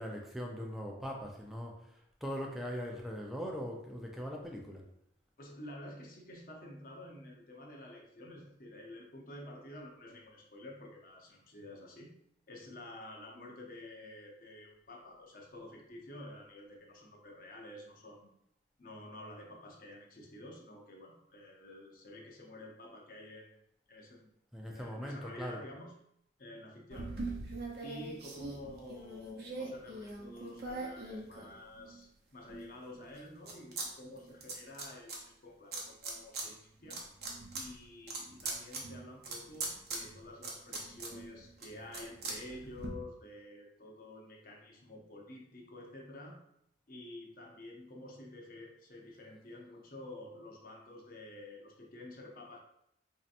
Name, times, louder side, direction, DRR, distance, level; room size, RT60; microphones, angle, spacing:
voice 1, 0.0-1.9 2.2-4.8 24.5-25.6, equal, ahead, -1 dB, 0.5 m, -40 dB
voice 2, 5.4-12.1 12.5-18.3 18.8-23.6 23.9-24.3 24.6-26.0 26.4-27.2 27.8-37.0 37.5-46.4 46.9-52.6, left 1 dB, 45° left, 0 dB, 0.7 m, -50 dB
sound 1, 26.9-32.0 32.5-33.9 34.1-35.2 35.7-36.5 36.8-42.9, right 3 dB, 55° right, 0.7 m, -42 dB
4.3 x 2.8 x 2.5 m, 0.75 s
head